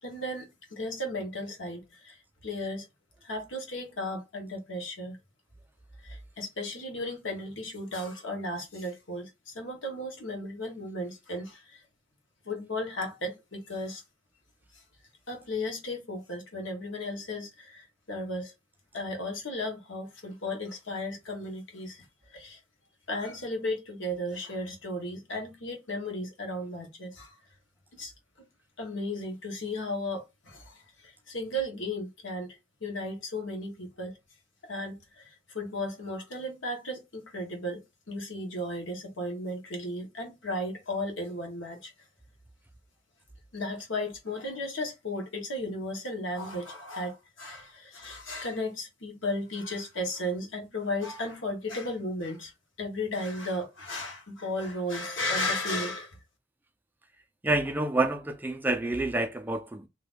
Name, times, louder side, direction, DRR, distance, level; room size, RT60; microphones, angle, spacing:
voice 1, 0.0-2.9 3.2-5.2 6.0-11.8 12.4-14.0 14.7-14.8 15.3-18.5 18.9-22.6 23.1-27.4 27.9-28.1 28.8-34.2 34.6-41.9 43.5-52.5 52.8-56.2, left 1 dB, 75° left, 1.3 m, -35 dB
voice 2, 57.4-59.9, right 2 dB, 10° right, 0.3 m, -28 dB
2.8 x 2.6 x 3.5 m
head